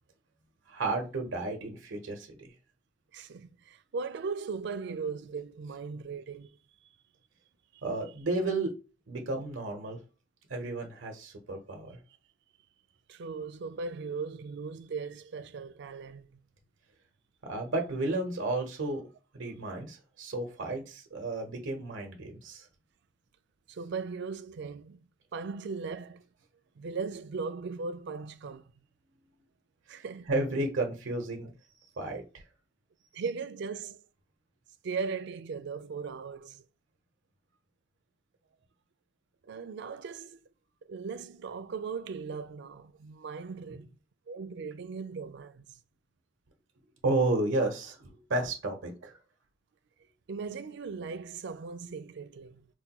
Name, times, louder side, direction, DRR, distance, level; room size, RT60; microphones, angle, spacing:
voice 1, 0.7-2.5 7.8-8.7 9.1-10.0 10.5-12.0 17.4-19.0 19.3-22.6 30.3-31.5 32.0-32.2 47.0-49.1, right 2 dB, 85° right, 0.9 m, -32 dB
voice 2, 3.1-6.5 13.1-16.3 23.7-25.0 25.3-26.2 26.8-28.6 29.9-30.3 33.1-34.0 34.8-36.6 39.4-40.4 40.9-44.0 44.3-45.8 50.3-52.7, right 5 dB, 65° right, 0.4 m, -38 dB
4.5 x 2.2 x 2.9 m
head